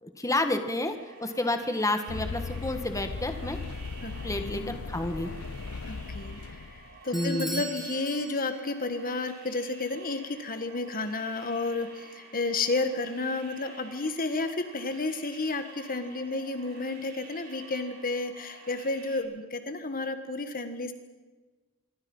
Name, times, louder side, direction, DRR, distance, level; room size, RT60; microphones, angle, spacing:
voice 1, 0.0-3.6 4.2-5.3 7.1-7.6, left 1 dB, 15° left, 7 dB, 1.9 m, -30 dB
sound 1, 0.9-19.2, right 3 dB, 45° right, 7.2 m, -50 dB
sound 2, 2.1-7.0, left 4 dB, 70° left, 0.7 m, -37 dB
voice 2, 4.0-4.8 5.9-6.6 7.0-20.9, left 3 dB, 40° left, 8 dB, 1.7 m, -32 dB
Bell / Doorbell, 7.1-8.8, right 3 dB, ahead, 7.3 m, -39 dB
26.5 x 24.0 x 5.6 m, 1.3 s
head